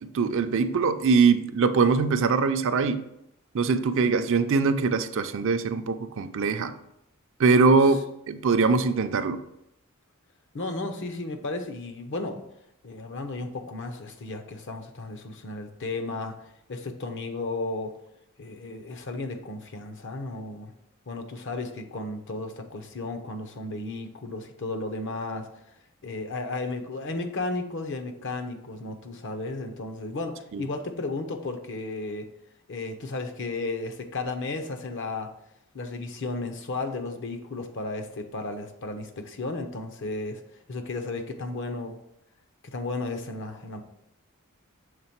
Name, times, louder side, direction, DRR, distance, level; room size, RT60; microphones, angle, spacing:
voice 1, 0.0-3.0 3.5-6.7 7.4-9.4 30.5-30.6, right 4 dB, 60° right, 9 dB, 0.4 m, -22 dB
voice 2, 10.5-12.4 12.8-16.4 16.7-17.9 18.4-20.7 21.1-25.5 26.0-32.3 32.7-35.3 35.7-40.4 40.7-42.0 42.6-43.8, left 2 dB, 60° left, 6 dB, 0.7 m, -34 dB
6.7 x 3.5 x 4.4 m, 0.80 s
head